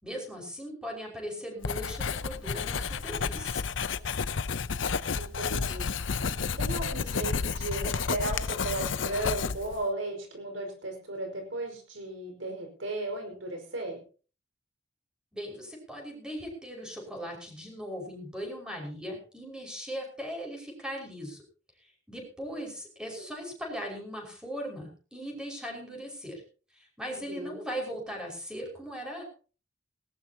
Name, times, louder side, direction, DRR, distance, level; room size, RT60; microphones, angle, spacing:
voice 1, 0.0-3.6 15.3-21.4 21.8-26.4 26.7-29.2, equal, 5° right, 1 dB, 5.6 m, -39 dB
Writing, 1.6-9.8, left 5 dB, 75° left, 0.7 m, -31 dB
voice 2, 5.1-14.0 23.2-23.3 27.2-27.6, right 2 dB, 80° right, 4 dB, 5.3 m, -36 dB
19.0 x 17.5 x 2.9 m, 0.38 s
head